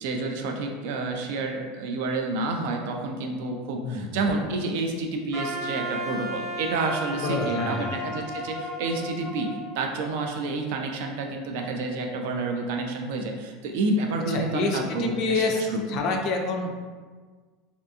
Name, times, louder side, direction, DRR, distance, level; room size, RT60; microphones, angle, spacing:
voice 1, 0.0-15.8 16.1-16.2, right 3 dB, 65° right, 3 dB, 0.3 m, -29 dB
Wind instrument woodwind instrument, 5.3-10.4, equal, 40° right, 1.1 m, -34 dB
voice 2, 7.2-7.9 14.3-16.7, left 3 dB, 40° left, 2 dB, 0.3 m, -27 dB
2.7 x 2.5 x 2.3 m, 1.5 s
supercardioid pair, 170°, 0 cm